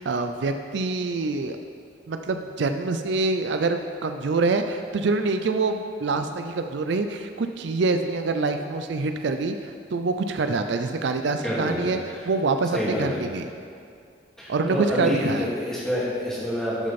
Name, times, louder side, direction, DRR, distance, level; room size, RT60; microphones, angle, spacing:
voice 1, 0.0-1.6 2.1-12.0 12.3-13.5 14.5-15.5, right 3 dB, 70° right, 7 dB, 0.4 m, -25 dB
voice 2, 11.4-12.3 12.7-13.2 14.4-16.9, left 1 dB, 5° left, -8 dB, 2.2 m, -28 dB
12.5 x 6.3 x 4.2 m, 2.3 s
head